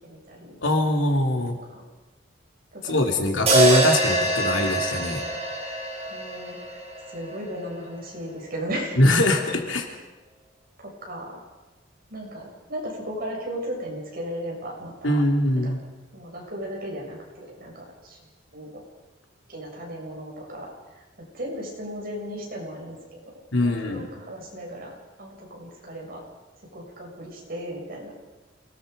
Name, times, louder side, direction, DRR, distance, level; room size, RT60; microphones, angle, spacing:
voice 1, 0.0-0.6 1.7-1.8 2.7-3.4 4.1-4.3 6.1-6.8 7.1-9.2 9.6-9.9 10.8-11.4 12.1-15.2 15.6-15.7 16.1-18.2 18.5-18.8 19.5-20.7 21.2-23.0 23.2-23.3 23.6-26.2 26.7-28.1, equal, 50° right, -1 dB, 7.2 m, -36 dB
voice 2, 0.6-1.6 2.8-5.2 9.0-9.9 15.0-15.8 23.5-24.1, left 1 dB, 85° left, 2 dB, 3.3 m, -22 dB
sound 1, 3.5-7.7, right 2 dB, 35° right, 7.6 m, -24 dB
28.0 x 20.0 x 5.3 m, 1.1 s
head